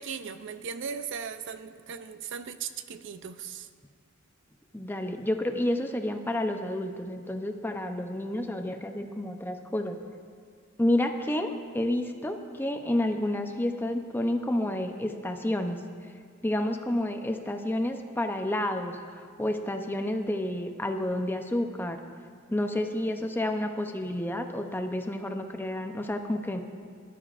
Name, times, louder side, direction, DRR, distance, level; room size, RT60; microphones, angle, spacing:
voice 1, 0.0-3.7 22.6-22.9, right 6 dB, 60° right, 11 dB, 0.5 m, -38 dB
voice 2, 4.7-10.0 10.8-15.8 16.4-22.0 22.5-26.6, left 1 dB, 10° left, 5 dB, 0.6 m, -30 dB
20.0 x 12.0 x 2.5 m, 2.2 s
head